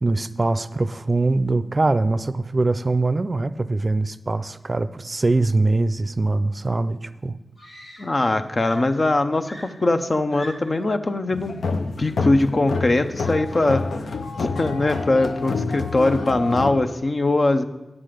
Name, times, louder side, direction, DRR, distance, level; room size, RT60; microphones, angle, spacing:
voice 1, 0.0-7.3, right 2 dB, 50° right, 12 dB, 0.4 m, -22 dB
Screaming, 7.6-8.3 8.6-10.9 11.9-12.1, left 1 dB, 70° left, 2.6 m, -43 dB
voice 2, 8.0-13.8 14.4-17.6, left 2 dB, 50° left, 8 dB, 0.7 m, -21 dB
sound 1, 11.3-16.7, left 4 dB, 90° left, 0.5 m, -28 dB
9.8 x 7.5 x 5.0 m, 1.0 s
cardioid pair, 45°, 0 cm